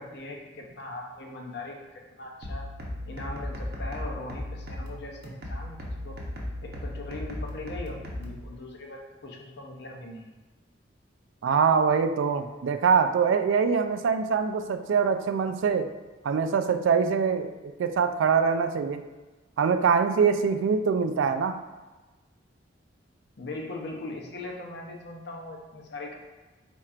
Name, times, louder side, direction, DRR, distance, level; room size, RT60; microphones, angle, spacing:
voice 1, 0.0-2.7 3.1-6.2 6.6-10.3 23.4-26.2, left 2 dB, 55° left, 1 dB, 0.6 m, -40 dB
sound 1, 2.4-8.4, left 1 dB, 50° right, 0.7 m, -36 dB
voice 2, 11.4-15.9 16.2-19.0 19.6-21.6, right 6 dB, 70° right, 9 dB, 0.3 m, -24 dB
4.4 x 4.3 x 2.4 m, 1.2 s
head